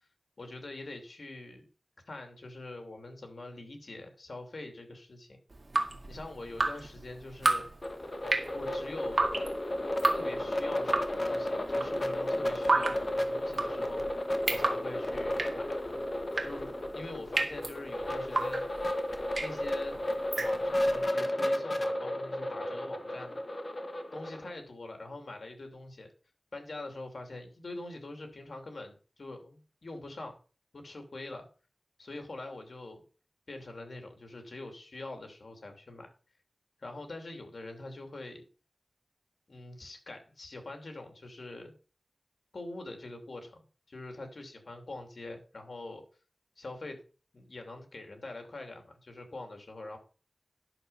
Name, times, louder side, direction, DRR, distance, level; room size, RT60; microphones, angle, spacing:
voice 1, 0.4-1.6 2.1-5.4 6.1-7.7 8.5-9.3 10.1-14.0 14.5-15.7 16.4-18.6 19.4-19.9 20.3-23.4 24.1-26.1 26.5-30.4 30.7-31.5 32.0-33.0 33.5-36.1 36.8-38.4 39.5-41.7 42.5-46.0 46.6-47.0 47.3-50.0, left 2 dB, 80° left, 4 dB, 2.9 m, -44 dB
Drip, 5.5-21.0, right 2 dB, 60° right, 1.8 m, -33 dB
sound 1, 7.8-24.5, left 1 dB, 45° left, 1.6 m, -33 dB
11.0 x 6.6 x 5.6 m, 0.36 s
wide cardioid pair, 70°, 0 cm